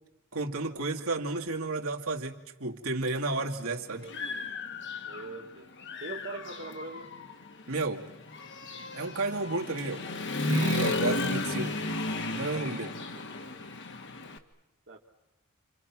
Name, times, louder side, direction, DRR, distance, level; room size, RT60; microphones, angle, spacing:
voice 1, 0.3-4.1 7.7-8.1 8.9-10.0 10.4-11.8 12.4-13.0, right 3 dB, 75° right, 1 dB, 2.4 m, -32 dB
Human voice / Motorcycle, 3.1-3.2 3.7-5.4 5.8-14.4, left 2 dB, 55° left, 1.8 m, -34 dB
voice 2, 3.9-4.5 5.0-5.7 6.0-7.1 13.1-13.5 14.9-15.0, right 3 dB, 55° right, 0 dB, 1.9 m, -43 dB
29.5 x 27.0 x 6.1 m, 0.94 s
head